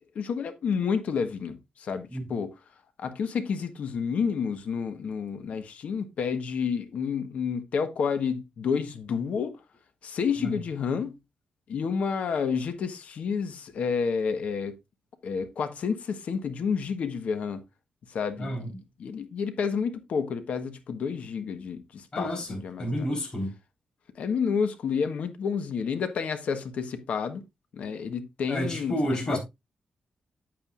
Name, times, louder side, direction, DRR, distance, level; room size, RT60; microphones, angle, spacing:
voice 1, 0.1-2.5 3.0-9.6 10.0-11.2 11.7-14.7 15.2-17.6 18.1-18.6 19.0-23.1 24.1-27.4 27.7-29.4, left 6 dB, 70° left, 1.3 m, -30 dB
voice 2, 22.1-23.5 28.5-29.4, equal, 30° left, 4.2 m, -30 dB
9.2 x 8.8 x 2.5 m
wide cardioid pair, 155°, 2 cm